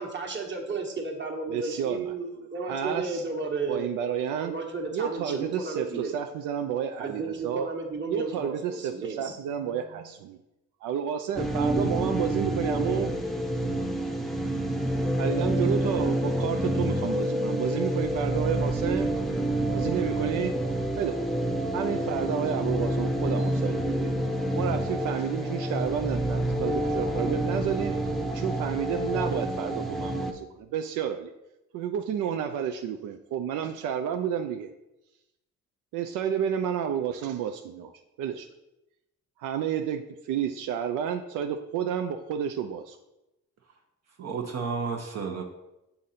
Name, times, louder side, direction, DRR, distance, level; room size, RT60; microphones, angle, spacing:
voice 1, 0.0-3.9 4.4-6.2 7.0-9.4, right 4 dB, 40° right, 1 dB, 1.3 m, -33 dB
voice 2, 1.5-2.1 2.7-3.2 3.7-4.5 4.9-7.7 8.1-10.4 10.8-13.1 15.2-19.1 19.7-20.5 21.0-21.2 21.7-24.1 24.5-28.0 28.3-31.3 31.7-34.7 35.9-37.9 38.2-38.5 39.4-43.0, right 8 dB, 85° right, 6 dB, 0.5 m, -30 dB
sound 1, 11.4-30.3, right 1 dB, ahead, 0.6 m, -28 dB
voice 3, 44.2-45.4, right 5 dB, 60° right, 2 dB, 0.8 m, -32 dB
7.0 x 3.8 x 4.1 m, 0.93 s
cardioid pair, 90°, 30 cm